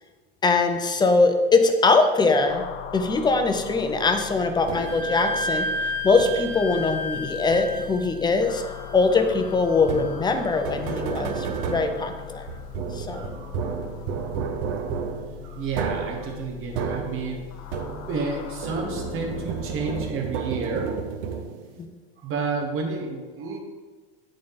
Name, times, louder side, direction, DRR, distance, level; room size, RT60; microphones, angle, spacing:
voice 1, 0.4-2.6 2.9-8.6 8.9-12.5 12.9-13.3 21.8-21.9, left 3 dB, 15° left, 6 dB, 0.5 m, -22 dB
sound 1, 2.5-20.1, left 9 dB, 55° left, 0.7 m, -40 dB
Wind instrument woodwind instrument, 4.7-12.2, left 1 dB, 25° right, 1.3 m, -34 dB
sound 2, 4.7-5.2 6.2-6.7 7.5-8.1 9.8-18.3 18.6-21.8, right 6 dB, 60° right, 0.8 m, -32 dB
voice 2, 13.1-13.8 14.1-14.9 15.4-17.4 18.1-20.9 22.2-23.6, right 4 dB, 40° right, 1 dB, 1.5 m, -31 dB
8.5 x 3.9 x 3.7 m, 1.3 s
hypercardioid pair, 110°, 31 cm